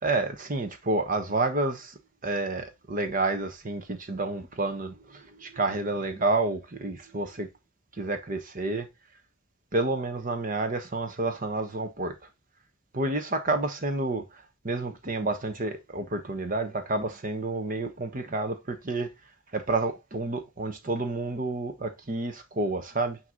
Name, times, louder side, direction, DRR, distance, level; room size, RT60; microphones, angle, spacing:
voice 1, 0.0-7.5 7.9-8.9 9.7-12.1 12.9-19.1 19.5-23.2, right 2 dB, 40° right, 1.1 m, -29 dB
9.1 x 3.0 x 3.8 m
head